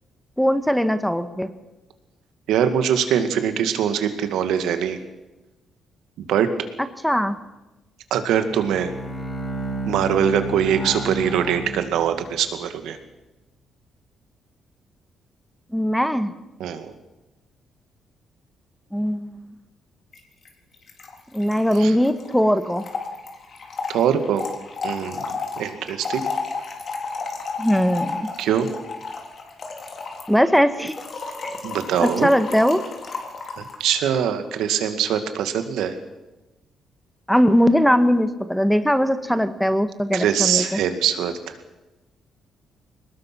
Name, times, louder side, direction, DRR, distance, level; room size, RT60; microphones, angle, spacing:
voice 1, 0.4-1.5 7.0-7.4 15.7-16.3 18.9-19.5 21.3-22.8 27.6-28.3 30.3-30.9 31.4-31.6 32.0-32.8 37.3-40.8, equal, ahead, 11 dB, 1.4 m, -20 dB
voice 2, 2.5-5.0 6.2-6.5 8.1-8.9 9.9-13.0 16.6-16.9 21.8-21.9 23.9-24.5 24.8-26.3 28.4-28.7 31.6-32.3 33.6-36.0 40.1-41.5, right 9 dB, 85° right, 9 dB, 2.1 m, -23 dB
Bowed string instrument, 8.4-12.4, right 1 dB, 30° left, 4.7 m, -31 dB
Trickle dribble / Fill (with liquid), 20.1-20.2 20.5-20.6 20.7-33.8, left 4 dB, 50° left, 3.8 m, -32 dB
22.5 x 19.5 x 6.2 m, 1.0 s
cardioid pair, 90°, 0 cm